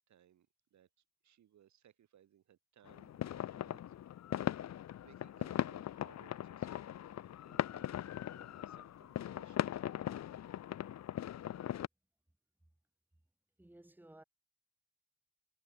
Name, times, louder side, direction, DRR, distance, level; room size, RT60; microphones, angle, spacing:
voice 1, 0.1-0.9 1.2-4.0 4.5-7.1 7.5-9.7, right 10 dB, 70° right, 5.2 m, -66 dB
sound 1, 2.9-11.9, left 11 dB, 60° left, 1.2 m, -39 dB
voice 2, 13.6-14.2, right 1 dB, 5° right, 2.2 m, -57 dB
cardioid pair, 90°, 30 cm